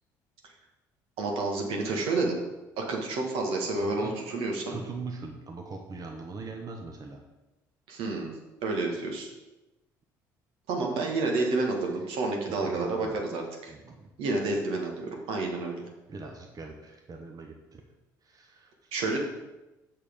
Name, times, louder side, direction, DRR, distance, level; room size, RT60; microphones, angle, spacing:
voice 1, 1.2-2.4 2.8-4.8 7.9-8.3 8.6-9.3 10.7-13.7 14.2-15.9 18.9-19.2, right 3 dB, 70° right, 1 dB, 1.6 m, -29 dB
voice 2, 3.8-4.1 4.7-7.2 12.4-13.2 13.7-14.1 16.1-17.8 18.2-18.9, right 3 dB, 40° right, 2 dB, 1.3 m, -41 dB
6.5 x 5.8 x 5.3 m, 1.1 s
hypercardioid pair, 60°, 10 cm